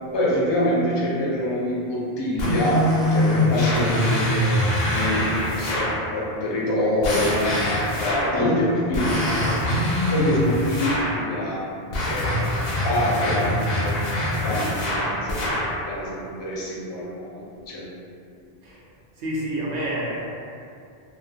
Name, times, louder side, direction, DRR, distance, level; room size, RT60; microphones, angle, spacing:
voice 1, 0.1-9.5 10.1-11.6 12.0-17.9, left 1 dB, 40° left, -6 dB, 0.4 m, -26 dB
sound 1, 2.4-6.0 7.0-8.4 8.9-11.2 11.9-15.8, left 1 dB, 65° left, 0.8 m, -24 dB
voice 2, 19.1-20.3, right 1 dB, 50° right, -6 dB, 0.6 m, -29 dB
2.3 x 2.3 x 2.7 m, 2.4 s
omnidirectional pair, 1.1 m